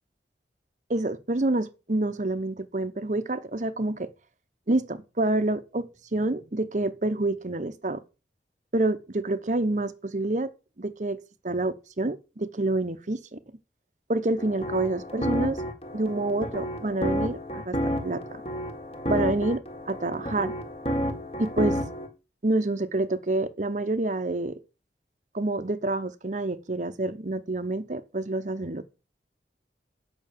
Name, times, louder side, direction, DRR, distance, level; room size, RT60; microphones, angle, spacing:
voice 1, 0.9-4.1 4.7-8.0 8.7-10.5 10.8-11.2 11.4-13.4 14.1-15.6 15.9-17.8 18.0-18.4 19.1-20.5 21.4-21.8 22.4-24.6 25.3-28.8, right 2 dB, 45° right, 0.9 m, -27 dB
sound 1, 14.4-22.1, equal, 35° left, 1.7 m, -31 dB
8.8 x 6.1 x 7.4 m
head